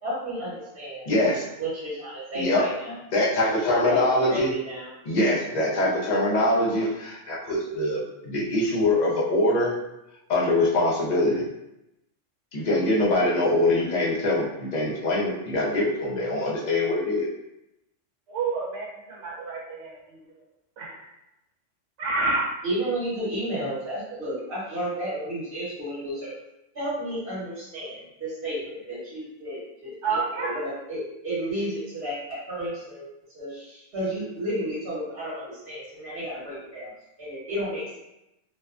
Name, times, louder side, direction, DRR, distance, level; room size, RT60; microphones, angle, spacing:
voice 1, 0.0-1.0 1.6-3.0 3.6-4.9 22.6-26.3 26.7-33.1 33.3-36.9 37.2-38.0, right 1 dB, 50° right, -10 dB, 1.3 m, -32 dB
voice 2, 1.1-1.4 2.3-2.7 3.1-4.5 5.0-9.7 10.3-11.4 12.5-17.3, left 1 dB, 45° left, -5 dB, 0.6 m, -23 dB
voice 3, 18.3-20.2 20.8-21.1 22.0-22.4 30.0-30.6, right 3 dB, 70° right, -4 dB, 1.0 m, -29 dB
2.7 x 2.2 x 2.4 m, 0.88 s
omnidirectional pair, 1.3 m